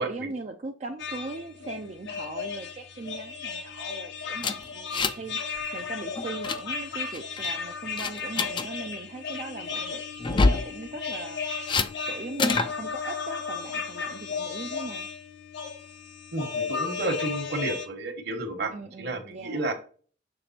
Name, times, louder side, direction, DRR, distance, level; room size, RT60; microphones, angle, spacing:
voice 1, 0.0-5.4 5.7-11.7 12.1-15.1 18.7-19.7, right 3 dB, 35° right, 3 dB, 0.4 m, -39 dB
sound 1, 1.0-17.9, left 5 dB, 60° left, 0.7 m, -35 dB
sound 2, 4.4-5.3 5.6-5.8 6.2-6.6 7.1-7.5 8.0-8.7 10.2-10.7 11.7-11.9 12.4-12.7, left 3 dB, 25° left, 0.4 m, -25 dB
voice 2, 16.3-18.7 19.0-19.7, right 2 dB, 55° right, 5 dB, 1.2 m, -31 dB
6.7 x 3.3 x 4.2 m, 0.42 s
head